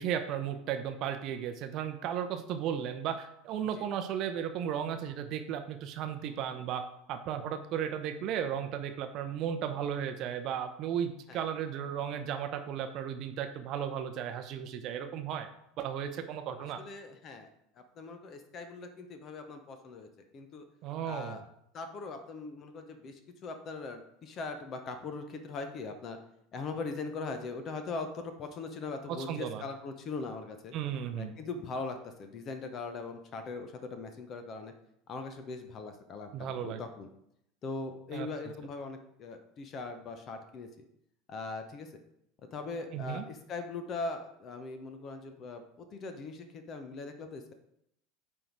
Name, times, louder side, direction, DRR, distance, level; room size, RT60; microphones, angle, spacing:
voice 1, 0.0-6.8 7.1-15.5 15.8-16.8 20.8-21.4 29.1-29.6 30.7-31.4 36.3-36.8 38.1-38.3 42.9-43.2, right 9 dB, 45° right, 8 dB, 0.7 m, -35 dB
voice 2, 16.8-17.5 17.7-20.7 21.0-21.4 21.7-26.2 26.5-30.7 31.2-34.7 35.1-37.1 37.6-40.8 41.3-41.9 42.5-47.5, left 3 dB, 40° left, 7 dB, 1.0 m, -40 dB
8.9 x 3.7 x 4.7 m, 0.76 s
figure-of-eight pair, 75°, 0 cm